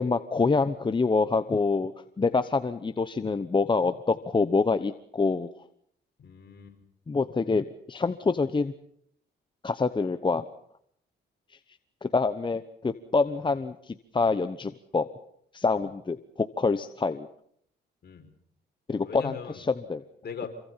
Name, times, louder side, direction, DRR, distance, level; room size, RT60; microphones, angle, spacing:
voice 1, 0.0-1.9 2.2-5.5 7.1-8.7 9.6-10.4 12.0-15.1 15.5-17.3 18.9-20.0, left 4 dB, 25° left, 11 dB, 1.0 m, -26 dB
voice 2, 6.2-6.8 15.7-15.9 18.0-18.3 19.0-19.7 20.2-20.5, left 6 dB, 55° left, 4 dB, 5.5 m, -40 dB
27.0 x 24.0 x 5.8 m, 0.69 s
cardioid pair, 90°, 20 cm